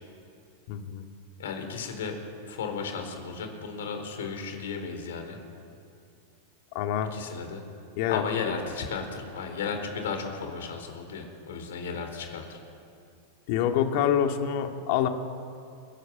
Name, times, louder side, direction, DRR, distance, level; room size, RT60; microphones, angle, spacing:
voice 1, 0.7-1.0 6.7-7.1 8.0-8.5 13.5-15.1, left 9 dB, 55° left, 5 dB, 2.0 m, -26 dB
voice 2, 1.4-2.2 2.4-5.4 7.1-7.6 8.1-12.6, left 5 dB, 80° left, 5 dB, 4.1 m, -34 dB
28.5 x 12.0 x 7.7 m, 2.5 s
hypercardioid pair, 125°, 0 cm